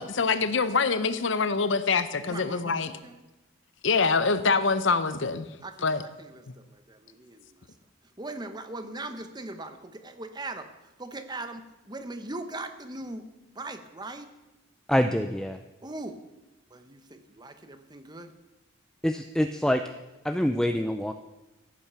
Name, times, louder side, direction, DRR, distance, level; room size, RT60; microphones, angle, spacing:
voice 1, 0.0-2.9 3.8-5.5 5.8-6.0, left 4 dB, 60° left, 13 dB, 0.8 m, -25 dB
voice 2, 2.2-3.2 5.6-7.7 8.2-13.2 13.5-14.3 15.8-16.2 16.7-18.3, right 2 dB, 20° right, 8 dB, 1.0 m, -40 dB
voice 3, 14.9-15.6 19.0-19.8 20.2-21.1, equal, 5° left, 7 dB, 0.4 m, -25 dB
15.0 x 8.9 x 6.9 m, 1.0 s
head